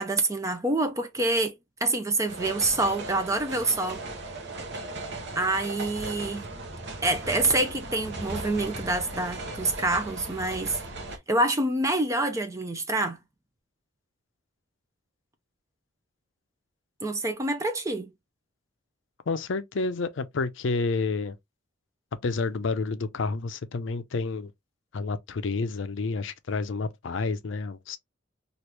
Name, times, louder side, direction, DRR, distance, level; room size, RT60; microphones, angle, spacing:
voice 1, 0.0-4.0 5.4-6.4 7.0-10.8 11.3-13.2 17.0-18.1, right 2 dB, 15° right, 0.4 m, -26 dB
sound 1, 2.3-11.2, right 2 dB, 55° right, 0.8 m, -37 dB
voice 2, 19.3-21.4 22.2-24.5 24.9-28.0, left 4 dB, 60° left, 0.5 m, -29 dB
2.9 x 2.5 x 3.2 m
head